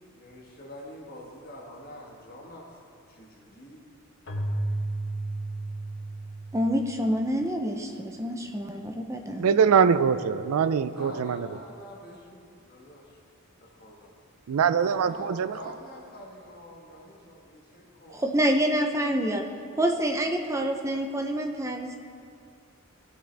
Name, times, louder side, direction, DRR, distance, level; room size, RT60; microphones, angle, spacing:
voice 1, 0.1-2.8 3.1-3.8 10.9-13.2 13.6-14.1 14.8-18.2, left 1 dB, 45° left, -2 dB, 1.5 m, -45 dB
Keyboard (musical), 4.3-7.8, right 2 dB, 65° left, 1.1 m, -33 dB
voice 2, 6.5-9.6 18.1-19.4 19.8-22.0, equal, 15° right, 3 dB, 0.5 m, -27 dB
voice 3, 9.4-11.5 14.5-15.5, right 6 dB, 85° right, 14 dB, 0.4 m, -23 dB
15.5 x 6.2 x 3.4 m, 2.3 s
head